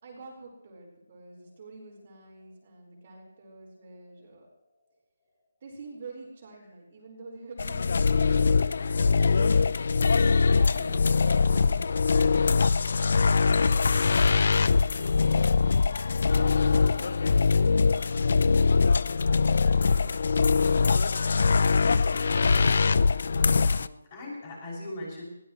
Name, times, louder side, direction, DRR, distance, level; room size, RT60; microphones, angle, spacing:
voice 1, 0.0-4.5 5.6-9.5 10.4-12.7 13.4-14.6 14.9-15.2 16.2-21.1 21.7-22.3, right 3 dB, 35° right, -2 dB, 4.6 m, -48 dB
sound 1, 7.6-23.9, left 4 dB, 50° left, 0.5 m, -22 dB
voice 2, 23.4-25.2, left 1 dB, 25° left, -3 dB, 6.4 m, -41 dB
21.0 x 17.0 x 3.1 m, 0.83 s
hypercardioid pair, 175°, 0 cm